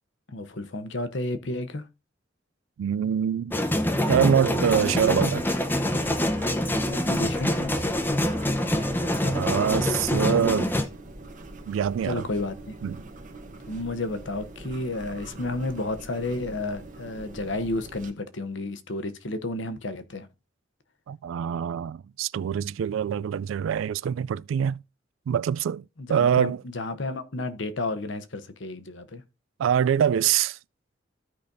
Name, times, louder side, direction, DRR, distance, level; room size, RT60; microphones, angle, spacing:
voice 1, 0.3-1.8 6.9-7.7 12.0-12.7 13.7-20.3 26.0-29.2, left 2 dB, 70° left, 0.9 m, -31 dB
voice 2, 2.8-3.5 4.1-5.5 9.3-10.7 11.7-12.3 12.8-13.0 21.1-24.8 25.3-25.8 26.1-26.6 29.6-30.6, right 8 dB, 90° right, 0.3 m, -24 dB
sound 1, 3.5-10.9, left 1 dB, 10° left, 0.7 m, -25 dB
sound 2, 4.7-18.1, right 2 dB, 40° right, 1.1 m, -43 dB
15.0 x 5.1 x 2.6 m
head